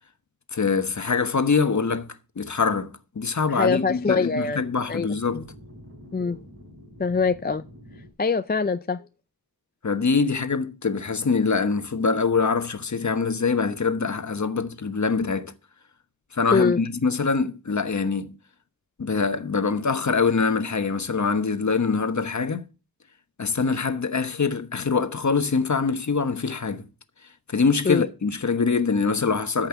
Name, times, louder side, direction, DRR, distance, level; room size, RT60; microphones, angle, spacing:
voice 1, 0.5-5.4 9.8-15.5 16.3-18.3 19.0-22.6 23.4-26.9 27.5-29.7, left 5 dB, 50° left, 1.2 m, -24 dB
voice 2, 3.5-4.6 4.9-5.1 5.3-5.4 6.1-6.4 7.0-7.6 8.2-9.1 16.5-16.8 27.8-28.0, left 4 dB, 25° left, 0.5 m, -23 dB
sound 1, 3.5-8.1, equal, 40° right, 4.0 m, -47 dB
13.5 x 5.7 x 7.0 m
wide cardioid pair, 85°, 38 cm